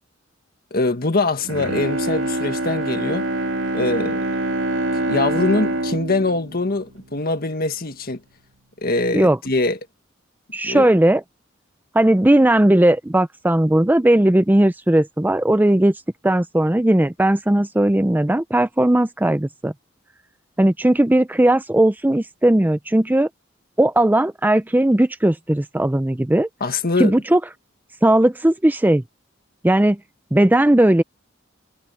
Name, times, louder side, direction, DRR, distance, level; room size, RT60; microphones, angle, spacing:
voice 1, 0.7-3.3 3.7-4.2 4.9-8.2 8.8-9.8 10.6-10.9 26.6-27.1, left 2 dB, 50° left, 1.6 m, -23 dB
Bowed string instrument, 1.4-7.6 8.1-8.2, right 1 dB, 80° right, 2.6 m, -25 dB
voice 2, 10.5-11.2 11.9-15.9 16.2-19.7 20.6-23.3 23.8-26.5 27.0-27.4 28.0-29.0 29.6-30.0 30.3-31.0, right 1 dB, 10° right, 0.5 m, -17 dB
head